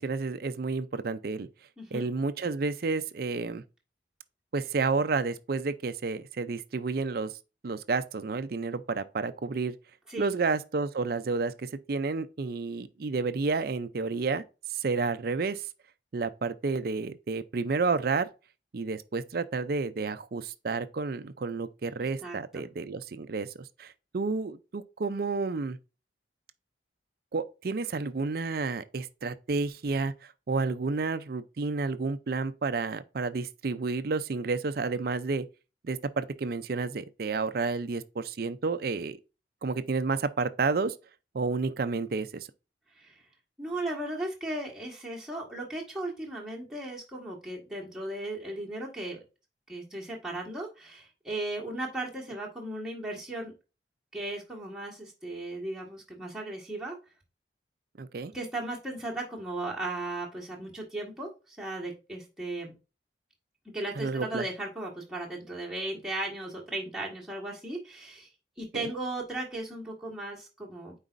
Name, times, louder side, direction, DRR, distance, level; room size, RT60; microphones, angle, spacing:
voice 1, 0.0-1.5 1.9-3.6 4.5-7.3 7.6-9.7 10.2-14.4 14.7-15.6 16.1-18.3 18.7-23.5 23.8-25.8 27.3-30.1 30.5-35.5 35.8-39.2 39.6-40.9 41.3-42.5 58.0-58.3 64.0-64.4 68.7-68.9, right 4 dB, 55° right, 0.5 m, -30 dB
voice 2, 22.0-22.6 42.9-43.2 43.6-49.2 49.7-53.5 54.1-57.0 58.3-62.7 63.7-68.3 68.6-70.9, right 2 dB, 5° right, 1.6 m, -36 dB
9.1 x 4.0 x 2.5 m
head